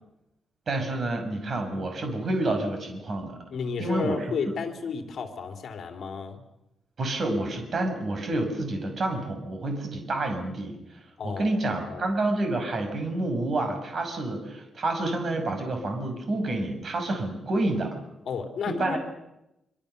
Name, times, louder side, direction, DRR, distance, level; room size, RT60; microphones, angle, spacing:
voice 1, 0.7-3.4 3.8-4.6 7.0-10.8 11.2-18.0 18.7-19.0, right 2 dB, 45° right, 5 dB, 5.9 m, -29 dB
voice 2, 3.5-6.4 11.2-11.6 11.8-12.1 18.3-19.0, left 6 dB, 60° left, 5 dB, 3.6 m, -32 dB
25.0 x 25.0 x 6.9 m, 0.89 s
wide cardioid pair, 150°, 0 cm